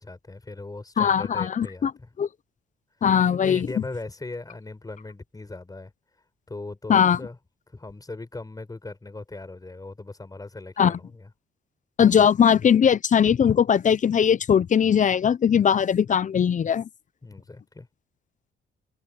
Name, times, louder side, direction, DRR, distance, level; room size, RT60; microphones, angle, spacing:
voice 1, 0.0-2.1 3.3-5.9 6.5-7.4 7.7-11.3 17.2-17.9, left 2 dB, 20° left, 5.4 m, -39 dB
voice 2, 1.0-1.9 2.2-2.3 3.0-3.7 6.9-7.2 10.8-11.0 12.0-16.9, left 8 dB, 40° left, 0.6 m, -20 dB
open air
cardioid pair, 90°, 20 cm